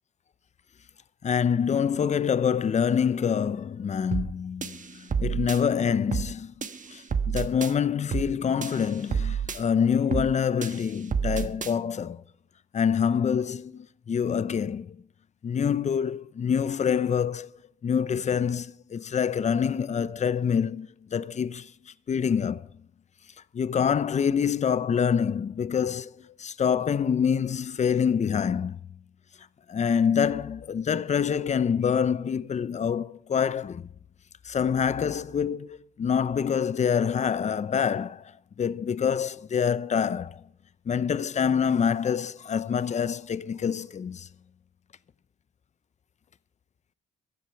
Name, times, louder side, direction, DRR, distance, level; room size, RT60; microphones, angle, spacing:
voice 1, 1.2-6.5 6.9-12.2 12.7-15.0 15.4-17.5 17.8-22.7 23.5-28.8 29.7-33.8 34.4-38.3 38.6-40.4 40.9-44.3, left 7 dB, 35° left, 0.6 m, -26 dB
sound 1, 4.1-4.3 4.6-5.6 6.1-6.3 6.6-7.7 8.1-8.3 8.6-9.6 10.1-10.3 10.6-11.7, right 6 dB, 40° right, 1.3 m, -29 dB
15.0 x 10.5 x 5.7 m
cardioid pair, 90°, 20 cm